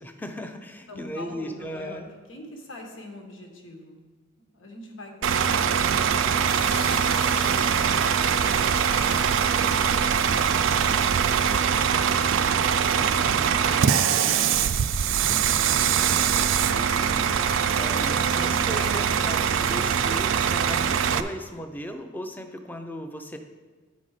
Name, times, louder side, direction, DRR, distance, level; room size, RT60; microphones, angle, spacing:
voice 1, 0.0-2.1 17.8-23.4, equal, 10° left, 6 dB, 0.5 m, -37 dB
voice 2, 0.9-2.0 2.3-4.0 4.5-8.7 9.5-15.8 16.5-17.7, left 1 dB, 85° left, 1 dB, 1.5 m, -44 dB
Bus / Idling, 5.2-21.2, right 7 dB, 80° right, 0.4 m, -22 dB
sound 1, 6.5-11.6, left 3 dB, 30° left, 1.2 m, -40 dB
10.0 x 4.1 x 4.9 m, 1.3 s
head